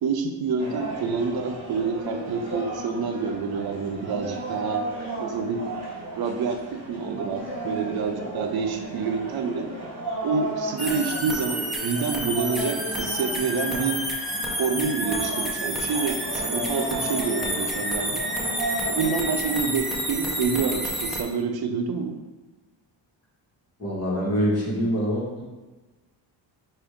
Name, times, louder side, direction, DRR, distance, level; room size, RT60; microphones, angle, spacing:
voice 1, 0.0-4.8 5.2-5.7 6.2-9.7 10.2-14.0 14.5-18.3 18.9-22.1, right 5 dB, 55° right, 4 dB, 0.6 m, -28 dB
sound 1, 0.6-19.6, right 2 dB, 35° right, 1.4 m, -34 dB
sound 2, 10.8-21.2, equal, ahead, 0.6 m, -29 dB
voice 2, 23.8-25.4, equal, 35° left, -5 dB, 1.5 m, -25 dB
4.9 x 2.6 x 3.6 m, 1.2 s
cardioid pair, 110°, 44 cm